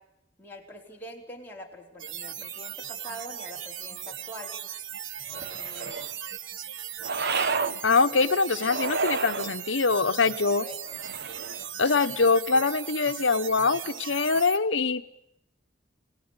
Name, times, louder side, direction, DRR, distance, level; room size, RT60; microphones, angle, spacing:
voice 1, 0.4-4.5 5.3-6.0 10.6-10.8, equal, 10° left, -2 dB, 4.5 m, -44 dB
sound 1, 2.0-14.6, right 9 dB, 85° right, 1.3 m, -38 dB
sound 2, 5.3-6.1 7.0-7.8 8.6-9.5 10.9-11.7, right 4 dB, 60° right, 1.2 m, -30 dB
voice 2, 7.8-10.6 11.8-15.1, left 4 dB, 90° left, 9 dB, 1.1 m, -23 dB
29.0 x 19.0 x 9.8 m, 0.82 s
head